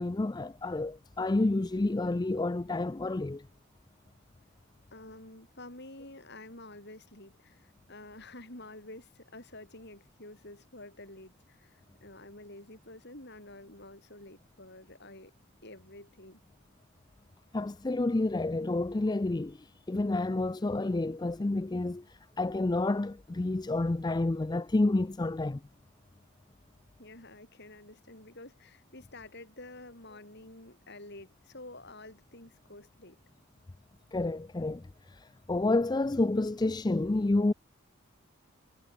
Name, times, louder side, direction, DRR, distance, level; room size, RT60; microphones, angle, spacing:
voice 1, 0.0-3.5 17.5-25.6 34.1-37.5, left 2 dB, 20° left, 0.4 m, -29 dB
voice 2, 4.9-15.3 15.6-16.4 27.0-33.2, left 2 dB, 50° left, 7.8 m, -49 dB
head